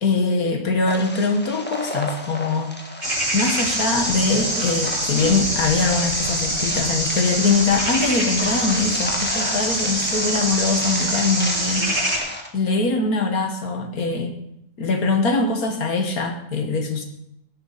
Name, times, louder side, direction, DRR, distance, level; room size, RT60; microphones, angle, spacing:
voice 1, 0.0-2.8 3.3-12.1 12.5-14.3 14.8-17.1, left 3 dB, 90° left, 5 dB, 2.1 m, -22 dB
sound 1, 0.9-12.5, left 1 dB, 5° left, 1.5 m, -32 dB
sound 2, 3.0-12.2, right 1 dB, 30° right, 5.2 m, -25 dB
17.5 x 11.0 x 4.1 m, 0.77 s
omnidirectional pair, 1.5 m